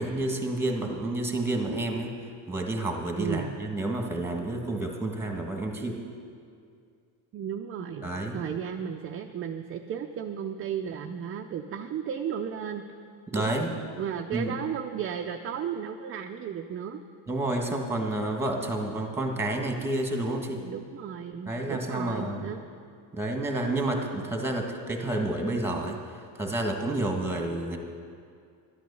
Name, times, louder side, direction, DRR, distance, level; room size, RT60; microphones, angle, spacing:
voice 1, 0.0-2.1 2.5-6.0 8.0-8.4 13.3-13.7 14.3-14.5 17.3-20.6 21.4-22.5 23.1-26.0 26.3-27.8, right 2 dB, 5° right, 2 dB, 1.6 m, -29 dB
voice 2, 3.1-3.6 7.3-12.9 13.3-13.6 14.0-17.0 20.6-22.6, right 8 dB, 30° right, 4 dB, 0.5 m, -34 dB
11.5 x 9.3 x 6.9 m, 2.3 s
cardioid pair, 120°, 42 cm